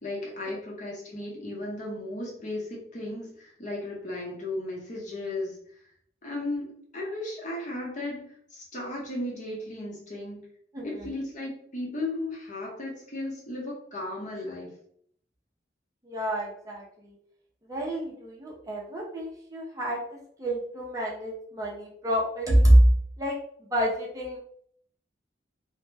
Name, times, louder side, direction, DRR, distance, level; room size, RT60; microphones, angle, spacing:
voice 1, 0.0-5.6 6.2-10.4 10.8-14.7, left 2 dB, 45° left, -3 dB, 0.8 m, -35 dB
voice 2, 10.7-11.2 16.0-17.2 17.6-22.8 23.2-24.4, right 1 dB, 20° right, -3 dB, 0.5 m, -26 dB
2.1 x 2.0 x 3.2 m, 0.63 s
head